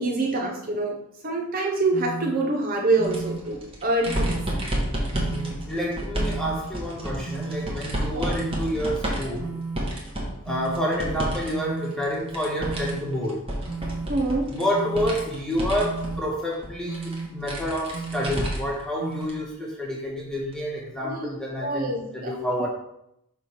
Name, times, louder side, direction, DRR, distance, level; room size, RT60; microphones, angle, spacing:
voice 1, 0.0-4.4 8.1-8.3 14.1-14.6 21.0-21.3 21.6-22.7, right 2 dB, 40° right, 0 dB, 0.7 m, -26 dB
sound 1, 1.9-2.3 3.0-3.4 4.1-4.5 5.1-5.5 6.2-6.6 7.3-7.7 8.3-8.7 9.4-9.8 10.5-10.9 11.5-11.9 12.6-13.0 13.7-14.1 14.7-15.1 15.8-16.2 16.9-17.3 17.9-18.3 19.0-19.3, right 4 dB, 80° right, 1.1 m, -33 dB
sound 2, 3.0-11.5 11.8-18.8 19.2-19.3 20.5-20.6, equal, 25° right, 1.3 m, -31 dB
voice 2, 5.1-9.5 10.4-13.4 14.5-22.7, equal, 5° left, -4 dB, 1.3 m, -29 dB
5.8 x 3.3 x 5.7 m, 0.80 s
head